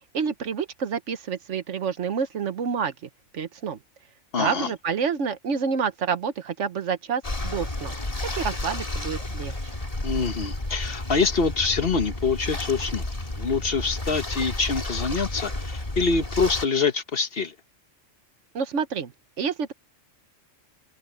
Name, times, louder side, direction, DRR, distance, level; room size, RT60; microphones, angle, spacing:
voice 1, 0.1-2.9 3.3-3.8 4.4-7.9 8.3-9.6 18.5-19.1 19.4-19.7, right 6 dB, 70° right, 1.3 m, -28 dB
voice 2, 4.3-4.7 10.0-13.0 13.4-17.5, left 4 dB, 50° left, 1.3 m, -25 dB
sound 1, 7.2-16.7, left 2 dB, 30° left, 2.4 m, -32 dB
open air
omnidirectional pair, 1.3 m